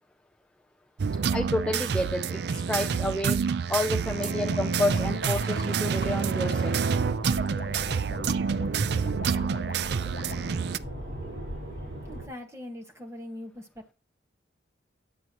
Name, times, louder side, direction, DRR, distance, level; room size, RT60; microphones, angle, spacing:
sound 1, 1.0-10.8, right 5 dB, 60° right, 0.4 m, -28 dB
voice 1, 1.3-3.4 3.7-6.8, left 1 dB, 5° left, 0.4 m, -30 dB
sound 2, 4.2-10.4, left 3 dB, 50° left, 0.7 m, -44 dB
sound 3, 7.1-12.3, right 1 dB, 80° right, 5.8 m, -39 dB
voice 2, 12.0-13.9, left 1 dB, 15° right, 1.6 m, -41 dB
9.2 x 8.2 x 3.0 m
head